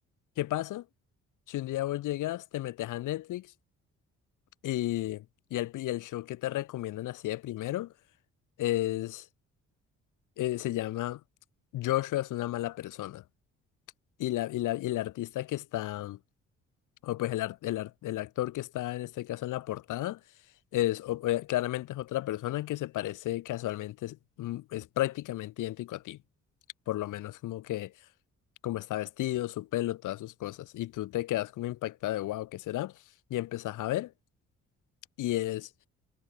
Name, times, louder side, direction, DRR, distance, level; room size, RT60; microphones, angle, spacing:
voice 1, 0.4-0.8 1.5-3.5 4.6-5.2 5.5-7.9 8.6-9.3 10.4-11.2 11.7-13.2 14.2-16.2 17.0-20.2 20.7-26.2 26.9-27.9 28.6-32.9 33.3-34.1 35.2-35.7, left 15 dB, 90° left, 5.9 m, -33 dB
cardioid pair, 90°, 30 cm